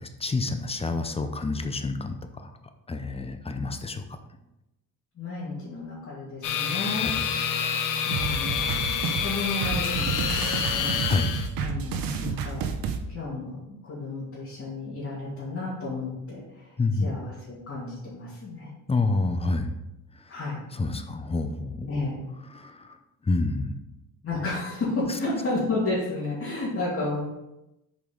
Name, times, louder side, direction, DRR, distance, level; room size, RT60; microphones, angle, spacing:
voice 1, 0.0-2.1 2.9-4.0 7.0-7.1 11.1-11.3 16.8-17.1 18.9-19.7 20.8-21.9 22.5-22.7 23.3-23.7, left 3 dB, 20° left, 7 dB, 0.6 m, -27 dB
voice 2, 5.2-7.1 8.0-11.0 11.6-12.6 13.1-18.7 20.3-20.6 21.9-22.2 24.2-27.2, left 2 dB, 40° left, -9 dB, 2.6 m, -32 dB
sound 1, 6.4-11.5, left 7 dB, 65° left, 0.8 m, -28 dB
sound 2, 8.1-13.0, right 6 dB, 85° right, 0.8 m, -30 dB
7.0 x 5.1 x 3.9 m, 0.93 s
cardioid pair, 125°, 34 cm